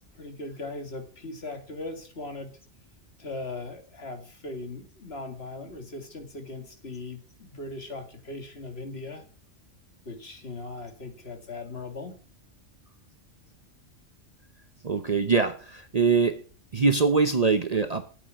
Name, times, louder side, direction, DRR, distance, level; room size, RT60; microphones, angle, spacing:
voice 1, 0.1-2.6 3.2-9.3 10.1-12.2, left 2 dB, 55° left, 6 dB, 2.3 m, -39 dB
voice 2, 14.8-16.4 16.7-18.0, right 4 dB, 40° right, 9 dB, 0.7 m, -23 dB
9.1 x 7.2 x 8.1 m, 0.41 s
omnidirectional pair, 1.3 m